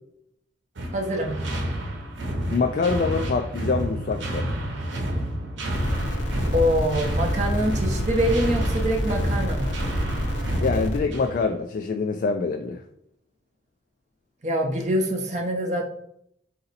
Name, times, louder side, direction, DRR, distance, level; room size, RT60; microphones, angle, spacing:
sound 1, 0.8-11.5, right 1 dB, 80° right, 0.8 m, -30 dB
voice 1, 0.9-1.3 6.5-9.8 14.4-15.8, equal, 40° right, 2 dB, 0.6 m, -25 dB
voice 2, 2.5-4.6 10.6-12.8, left 4 dB, 45° left, 5 dB, 0.3 m, -25 dB
sound 2, 5.7-11.0, equal, 75° left, 0.8 m, -28 dB
4.0 x 2.7 x 4.0 m, 0.73 s
head